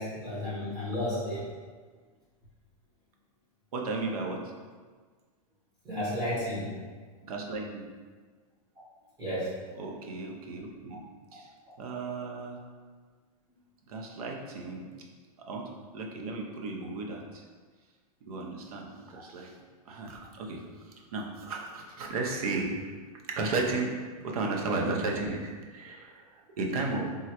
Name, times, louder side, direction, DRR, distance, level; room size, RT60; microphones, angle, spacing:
voice 1, 0.0-1.4 5.8-6.7 9.2-9.6 10.9-11.0 11.3-11.4 11.7-11.8, left 1 dB, 20° right, -10 dB, 0.8 m, -33 dB
voice 2, 3.7-4.5 7.3-7.9 9.7-11.0 11.3-11.5 11.8-12.6 13.9-14.9 15.5-17.4 18.2-19.5 19.9-22.8 23.3-24.0 24.2-27.1, right 3 dB, 70° right, 1 dB, 0.6 m, -34 dB
3.4 x 2.1 x 2.8 m, 1.5 s
supercardioid pair, 160°, 19 cm